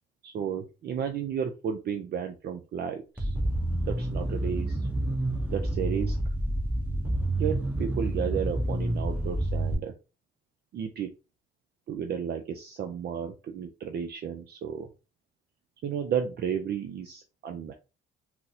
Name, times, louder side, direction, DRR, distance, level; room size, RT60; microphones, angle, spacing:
voice 1, 0.2-3.4 3.9-4.9 5.5-6.2 7.4-9.9 10.7-11.1 11.9-14.9 15.8-17.7, right 8 dB, 55° right, 5 dB, 0.4 m, -33 dB
sound 1, 3.2-9.7, right 1 dB, 5° right, 0.8 m, -29 dB
3.9 x 2.0 x 2.7 m, 0.31 s
cardioid pair, 90°, 20 cm